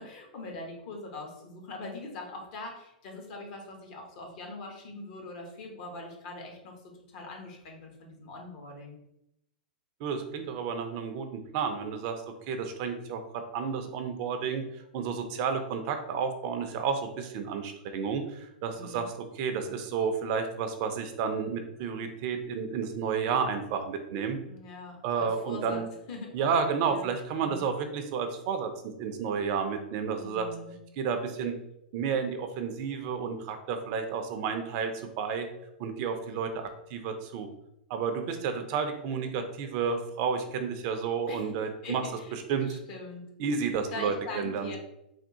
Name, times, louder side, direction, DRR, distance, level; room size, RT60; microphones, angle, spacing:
voice 1, 0.0-9.0 18.7-19.1 24.4-25.8 26.1-26.3 26.8-27.1 27.4-27.6 30.2-30.7 41.3-41.5 41.8-42.4 42.6-43.2 43.9-44.8, left 2 dB, 50° left, 1 dB, 0.9 m, -42 dB
voice 2, 10.0-14.6 14.9-24.4 25.0-25.9 26.3-30.5 31.0-31.6 31.9-35.5 35.8-37.5 37.9-42.0 42.5-42.8 43.4-44.7, right 6 dB, 45° right, 6 dB, 0.4 m, -31 dB
3.4 x 2.3 x 2.8 m, 0.81 s
hypercardioid pair, 105°, 5 cm